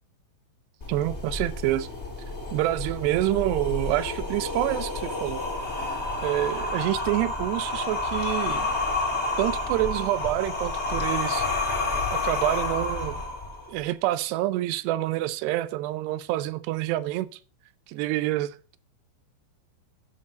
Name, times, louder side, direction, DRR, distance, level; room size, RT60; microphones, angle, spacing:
sound 1, 0.8-13.8, left 2 dB, 35° left, 1.1 m, -30 dB
voice 1, 0.9-1.9 2.5-5.4 6.2-8.7 9.4-11.5 12.1-13.2 13.7-17.4 17.9-18.8, right 15 dB, 80° right, 2.7 m, -27 dB
11.0 x 7.2 x 5.2 m
omnidirectional pair, 4.9 m